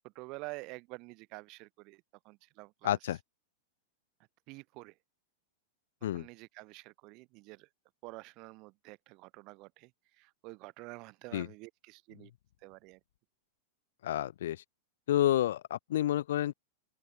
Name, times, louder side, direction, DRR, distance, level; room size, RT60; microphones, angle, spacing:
voice 1, 0.0-3.0 4.5-5.0 6.1-7.7 8.0-12.3 12.6-13.0, right 25 dB, 30° right, 1.3 m, -48 dB
voice 2, 2.8-3.2 6.0-6.3 11.3-11.5 14.0-14.6 15.1-16.5, left 12 dB, 65° left, 0.4 m, -29 dB
open air
supercardioid pair, 175°, 0 cm